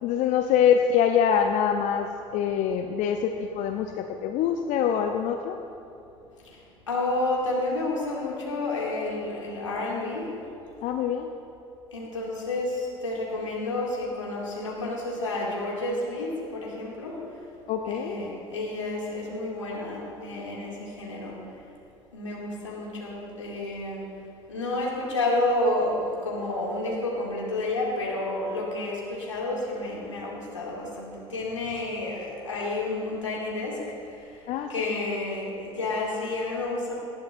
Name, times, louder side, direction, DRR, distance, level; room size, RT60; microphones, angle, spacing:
voice 1, 0.0-5.6 10.8-11.3 17.7-18.4 34.5-35.0, left 8 dB, 55° left, 6 dB, 0.7 m, -25 dB
voice 2, 6.9-10.2 11.9-17.2 17.9-21.4 22.1-24.0 24.5-33.8 34.7-36.9, left 2 dB, 85° left, -4 dB, 2.4 m, -30 dB
19.0 x 14.0 x 2.6 m, 2.7 s
figure-of-eight pair, 60°, 15 cm